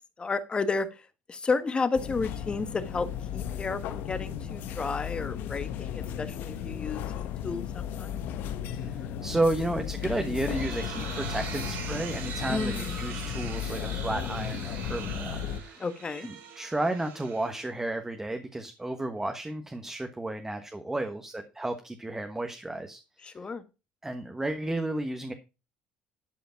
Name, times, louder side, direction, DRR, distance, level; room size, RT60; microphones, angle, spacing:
voice 1, 0.2-8.2 12.5-13.0 15.8-16.3 23.2-23.6, left 4 dB, 30° left, 12 dB, 1.4 m, -32 dB
sound 1, 1.9-15.6, left 9 dB, 70° left, 1.0 m, -35 dB
voice 2, 8.8-15.8 16.2-23.0 24.0-25.3, right 2 dB, 10° right, 6 dB, 1.4 m, -32 dB
sound 2, 10.1-18.0, right 6 dB, 80° right, 5.0 m, -41 dB
11.5 x 5.1 x 5.8 m, 0.30 s
supercardioid pair, 95°, 4 cm